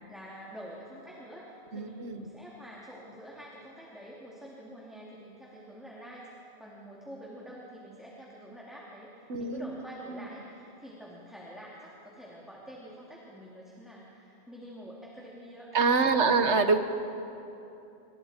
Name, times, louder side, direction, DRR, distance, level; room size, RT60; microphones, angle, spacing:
voice 1, 0.1-16.6, equal, ahead, -6 dB, 2.8 m, -47 dB
voice 2, 1.7-2.3 9.3-9.8 10.1-10.2 15.7-16.8, right 4 dB, 90° right, 7 dB, 1.6 m, -25 dB
28.0 x 24.5 x 4.5 m, 2.9 s
omnidirectional pair, 1.1 m